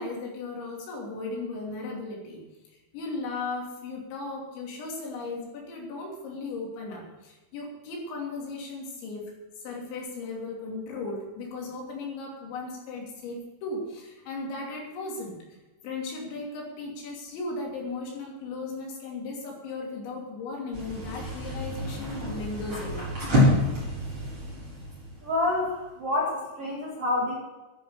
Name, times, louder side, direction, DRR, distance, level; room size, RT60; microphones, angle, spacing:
voice 1, 0.0-2.4 2.7-9.3 9.6-15.4 15.8-23.1, left 3 dB, 70° left, -1 dB, 5.1 m, -36 dB
sound 1, 20.7-25.8, left 1 dB, 25° right, 5.6 m, -28 dB
voice 2, 25.2-27.4, left 2 dB, 45° right, -2 dB, 2.1 m, -28 dB
11.5 x 11.0 x 6.9 m, 1.1 s
omnidirectional pair, 5.5 m